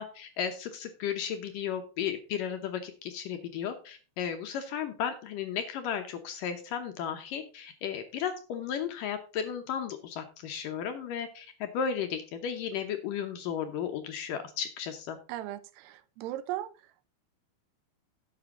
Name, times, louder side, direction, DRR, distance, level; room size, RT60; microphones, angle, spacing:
voice 1, 0.0-15.2, left 8 dB, 70° left, 6 dB, 2.2 m, -34 dB
voice 2, 15.3-17.1, right 14 dB, 85° right, 14 dB, 2.9 m, -38 dB
11.0 x 7.9 x 3.8 m, 0.34 s
omnidirectional pair, 4.8 m